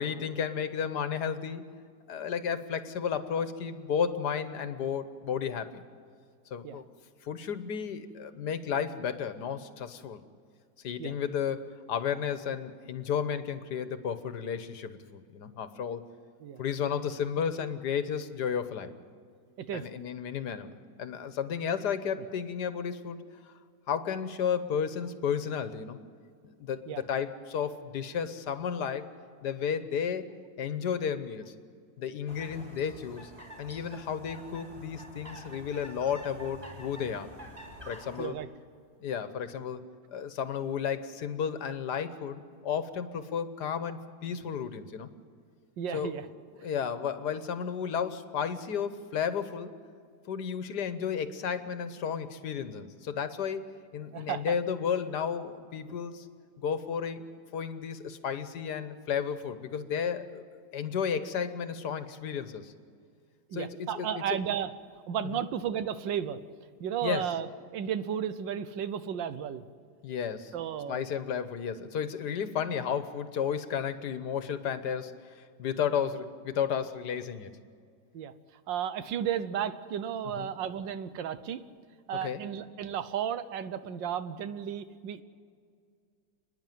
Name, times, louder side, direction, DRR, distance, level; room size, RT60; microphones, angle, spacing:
voice 1, 0.0-1.6 2.1-5.8 6.5-6.8 7.2-10.2 10.8-16.0 16.6-18.9 19.7-20.7 21.0-23.2 23.9-26.0 26.4-29.1 29.4-30.3 30.6-31.5 32.0-33.3 33.6-37.3 37.9-38.4 39.0-39.8 40.1-45.1 45.9-46.2 46.6-49.7 50.3-56.3 56.6-57.2 57.5-60.4 60.7-62.7 63.5-64.4 65.3-65.4 67.0-67.2 70.0-70.5 70.9-77.5 80.4-80.5 82.2-82.4, left 7 dB, 70° left, 11 dB, 1.6 m, -33 dB
sound 1, 32.3-38.3, right 1 dB, 20° right, 4.0 m, -48 dB
voice 2, 45.8-46.3 46.6-46.7 54.1-54.5 55.8-55.9 63.5-64.7 65.1-66.4 66.8-69.6 70.5-71.0 75.9-76.0 78.1-78.3 78.7-81.6 82.1-85.2, right 9 dB, 90° right, 12 dB, 1.6 m, -33 dB
29.5 x 10.5 x 9.3 m, 2.2 s
omnidirectional pair, 1.9 m